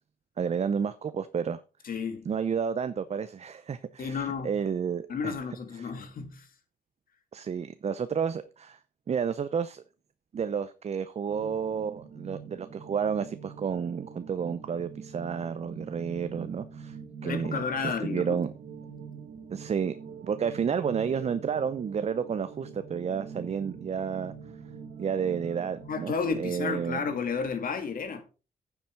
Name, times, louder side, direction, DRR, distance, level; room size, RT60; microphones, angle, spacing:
voice 1, 0.4-1.6 2.3-5.3 5.8-5.9 7.3-8.8 9.1-9.8 10.3-17.0 17.2-17.6 18.0-18.5 19.5-20.0 20.2-24.3 25.0-26.1 26.4-27.0, right 7 dB, 45° right, 0.6 m, -31 dB
voice 2, 1.8-2.3 4.0-4.5 5.1-6.5 17.2-18.4 25.9-28.2, left 5 dB, 65° left, 2.3 m, -32 dB
sound 1, 11.3-26.2, right 6 dB, 90° right, 1.8 m, -44 dB
9.5 x 7.1 x 4.6 m
cardioid pair, 95°, 15 cm